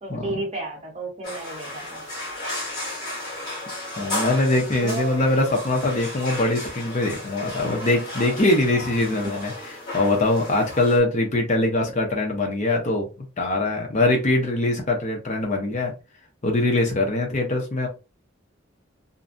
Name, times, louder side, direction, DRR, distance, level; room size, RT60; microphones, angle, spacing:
voice 1, 0.0-2.0 4.5-5.2 9.2-9.3, right 2 dB, 35° right, 0.9 m, -33 dB
sound 1, 1.2-11.0, left 1 dB, 20° left, 1.3 m, -34 dB
voice 2, 4.0-9.5 9.9-13.1 13.4-15.9 16.4-17.9, left 2 dB, 35° left, 0.6 m, -22 dB
2.5 x 2.1 x 2.5 m
head